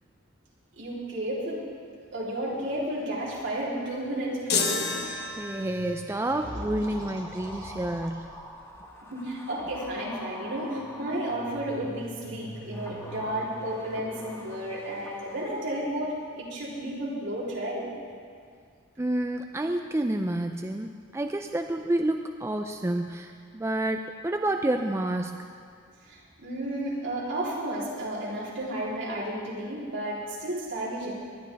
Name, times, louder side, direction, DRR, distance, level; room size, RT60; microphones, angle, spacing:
voice 1, 0.8-1.6 2.1-5.3 9.1-17.9 26.1-31.1, right 1 dB, 65° right, -6 dB, 3.5 m, -32 dB
sound 1, 4.5-6.0, left 5 dB, 55° left, 1.2 m, -29 dB
voice 2, 5.4-8.3 19.0-25.3, right 1 dB, 15° right, 4 dB, 0.4 m, -29 dB
sound 2, 6.4-11.9 12.5-15.8 16.0-16.1, left 1 dB, 15° left, 1.3 m, -43 dB
19.5 x 11.5 x 3.5 m, 2.1 s
head